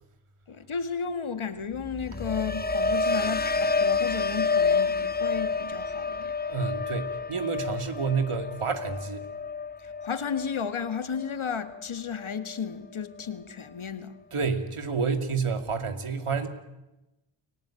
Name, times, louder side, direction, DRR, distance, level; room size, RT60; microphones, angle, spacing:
voice 1, 0.5-6.3 9.8-14.1, left 6 dB, 75° left, 1.9 m, -33 dB
sound 1, 1.7-11.8 12.2-12.6, left 4 dB, 20° left, 1.0 m, -29 dB
voice 2, 6.5-9.3 14.3-16.5, right 5 dB, 90° right, 2.6 m, -29 dB
30.0 x 18.0 x 9.0 m
wide cardioid pair, 60°, 49 cm